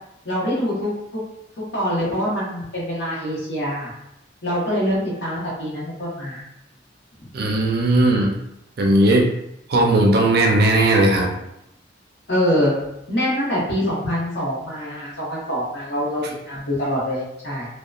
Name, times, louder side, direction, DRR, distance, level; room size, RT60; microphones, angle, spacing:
voice 1, 0.2-1.2 1.7-3.9 4.4-6.4 12.3-12.7 13.1-17.7, equal, 65° left, -6 dB, 1.0 m, -24 dB
voice 2, 7.3-8.4 8.8-9.3 9.7-11.3, right 1 dB, 55° right, 0 dB, 0.4 m, -17 dB
2.8 x 2.2 x 2.3 m, 0.81 s
head